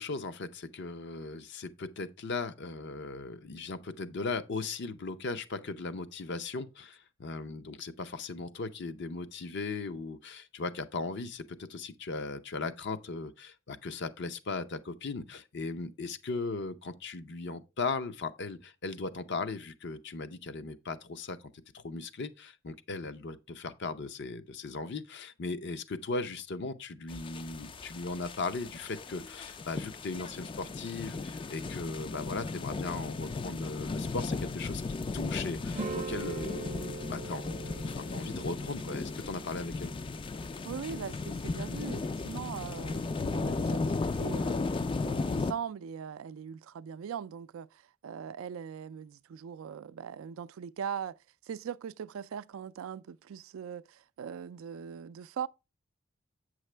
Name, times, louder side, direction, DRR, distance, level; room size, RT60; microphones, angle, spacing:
voice 1, 0.0-39.9, left 3 dB, 60° left, 0.6 m, -38 dB
sound 1, 27.1-45.5, left 3 dB, 25° left, 0.3 m, -36 dB
sound 2, 35.7-40.9, right 3 dB, 35° right, 0.5 m, -42 dB
voice 2, 40.6-43.9 44.2-44.6 45.0-51.2 51.5-55.5, right 7 dB, 90° right, 0.3 m, -40 dB
8.2 x 6.3 x 3.3 m
head